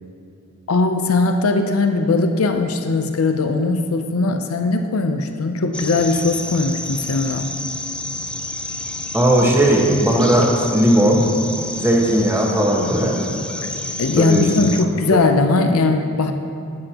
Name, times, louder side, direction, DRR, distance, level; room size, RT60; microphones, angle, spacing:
voice 1, 0.7-7.5 14.0-16.3, left 3 dB, 85° left, 6 dB, 0.6 m, -19 dB
sound 1, 5.7-14.8, left 2 dB, 5° left, 0.3 m, -30 dB
voice 2, 9.1-11.3 11.7-13.2 14.2-14.8, right 1 dB, 10° right, -2 dB, 1.3 m, -17 dB
13.0 x 9.5 x 2.9 m, 2.7 s
head